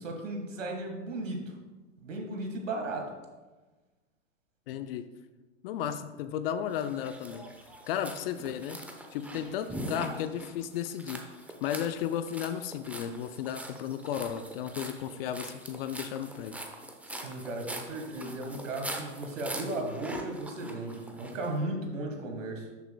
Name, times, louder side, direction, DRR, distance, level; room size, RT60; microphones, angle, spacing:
voice 1, 0.0-1.5 2.0-3.1 17.0-22.7, right 2 dB, 80° right, 3 dB, 1.6 m, -35 dB
voice 2, 4.7-5.1 5.6-7.4 7.9-8.8 9.1-11.2 11.6-16.5, left 9 dB, 50° left, 10 dB, 0.5 m, -34 dB
sound 1, 6.7-21.5, right 1 dB, 5° right, 0.7 m, -43 dB
11.0 x 6.9 x 2.2 m, 1.2 s
hypercardioid pair, 105°, 38 cm